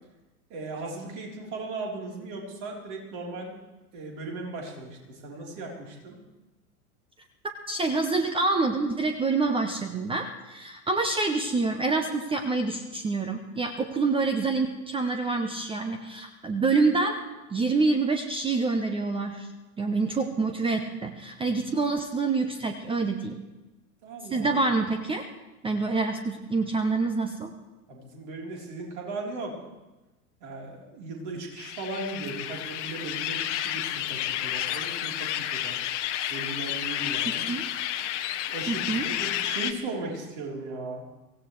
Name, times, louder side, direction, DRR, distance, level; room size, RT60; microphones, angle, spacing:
voice 1, 0.5-3.6 3.9-6.2 24.0-24.5 27.9-29.5 30.4-35.8 36.3-37.5 38.5-41.0, right 2 dB, 40° right, -1 dB, 3.8 m, -37 dB
voice 2, 7.7-17.2 17.5-19.5 19.8-23.4 24.3-25.3 25.6-27.5 37.5-37.7 38.7-39.1, right 3 dB, 10° right, 6 dB, 0.8 m, -26 dB
sound 1, 31.6-39.7, left 12 dB, 50° left, 1.0 m, -31 dB
23.5 x 16.5 x 3.2 m, 1.1 s
figure-of-eight pair, 90°, 46 cm